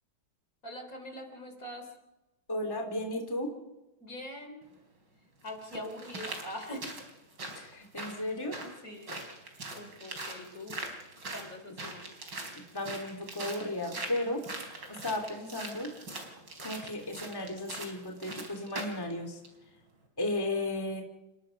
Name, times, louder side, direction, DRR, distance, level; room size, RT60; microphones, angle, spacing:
voice 1, 0.6-1.9 4.0-4.6 5.4-7.0 8.6-9.3 9.7-10.8 11.3-12.1, left 1 dB, 40° left, 5 dB, 3.9 m, -43 dB
voice 2, 2.5-3.5 7.5-8.6 12.5-14.4 15.0-15.9 16.6-19.4 20.2-21.0, left 1 dB, 10° left, 3 dB, 2.9 m, -34 dB
sound 1, 4.6-4.7 5.5-19.0 19.4-19.5, right 2 dB, 60° right, 4.8 m, -42 dB
29.0 x 19.0 x 5.3 m, 1.0 s
omnidirectional pair, 2.3 m